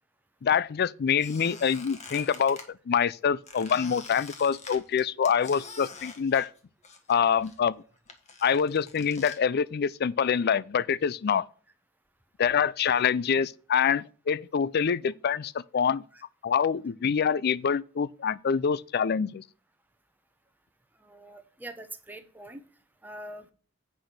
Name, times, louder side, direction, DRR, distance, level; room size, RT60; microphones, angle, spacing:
voice 1, 0.4-6.5 7.1-7.8 8.4-11.5 12.4-16.0 16.4-19.4, left 7 dB, 50° left, 0.4 m, -26 dB
Squeak, 1.2-2.7 3.5-7.2 7.4-9.4, left 4 dB, 35° left, 1.5 m, -45 dB
voice 2, 21.0-22.6 23.0-23.5, right 1 dB, 10° right, 1.0 m, -43 dB
8.5 x 5.0 x 5.9 m
head